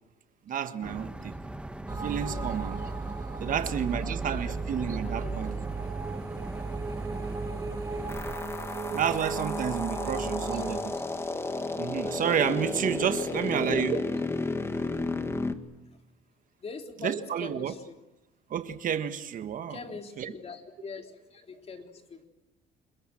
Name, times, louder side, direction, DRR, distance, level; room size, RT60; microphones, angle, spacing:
voice 1, 0.5-1.3 2.0-2.8 3.4-5.5 8.9-10.8 11.8-14.0 17.0-17.7 18.5-19.7 20.2-20.3, right 8 dB, 50° right, 1.5 m, -30 dB
sound 1, 0.8-8.4, right 1 dB, 5° right, 1.2 m, -40 dB
sound 2, 1.9-10.8, right 4 dB, 20° right, 3.1 m, -35 dB
voice 2, 2.2-2.6 3.4-5.4 10.0-11.0 13.2-14.0 15.9-16.0 16.6-18.0 19.7-22.3, left 4 dB, 35° left, 3.6 m, -44 dB
sound 3, 8.1-15.5, left 3 dB, 15° left, 1.7 m, -32 dB
29.0 x 21.5 x 7.7 m
cardioid pair, 110°, 17 cm